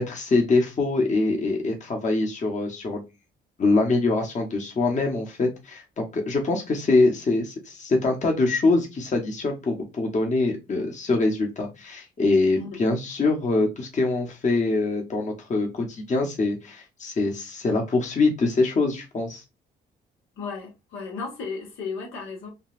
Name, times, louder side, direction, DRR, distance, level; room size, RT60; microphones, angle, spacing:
voice 1, 0.0-3.0 3.6-19.4, left 3 dB, 35° left, 1.0 m, -24 dB
voice 2, 20.4-22.5, left 4 dB, 85° left, 1.3 m, -34 dB
3.8 x 2.3 x 2.4 m
cardioid pair, 90°, 20 cm